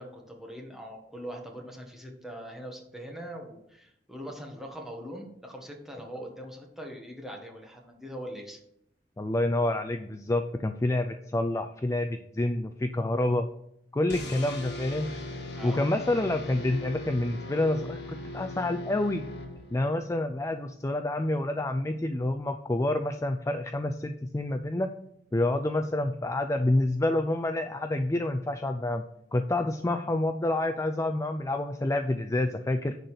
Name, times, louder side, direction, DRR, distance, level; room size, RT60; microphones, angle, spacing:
voice 1, 0.0-8.6 15.5-15.8, equal, ahead, 0 dB, 1.6 m, -42 dB
voice 2, 9.2-13.5 13.9-15.1 15.6-19.2 19.7-24.9 25.3-29.0 29.3-33.0, left 1 dB, 15° left, 7 dB, 0.4 m, -28 dB
sound 1, 14.1-20.0, left 1 dB, 70° left, 1.7 m, -39 dB
10.5 x 4.0 x 6.7 m, 0.75 s
head